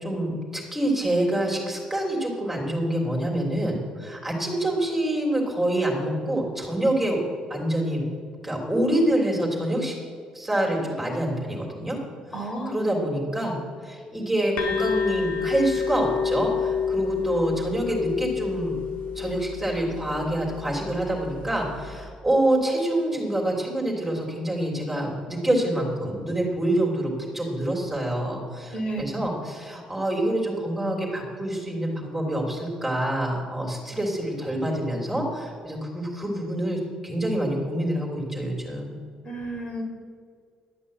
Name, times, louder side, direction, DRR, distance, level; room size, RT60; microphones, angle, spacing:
voice 1, 0.0-7.2 7.5-8.1 8.4-9.9 10.3-12.0 12.3-18.8 19.1-38.9, right 1 dB, 10° right, -2 dB, 3.2 m, -26 dB
voice 2, 12.3-12.8 28.7-29.2 39.2-39.8, right 1 dB, 45° left, 2 dB, 4.0 m, -31 dB
sound 1, 14.6-22.1, left 6 dB, 75° left, 1.9 m, -29 dB
12.0 x 8.2 x 8.6 m, 2.1 s
cardioid pair, 105°, 2 cm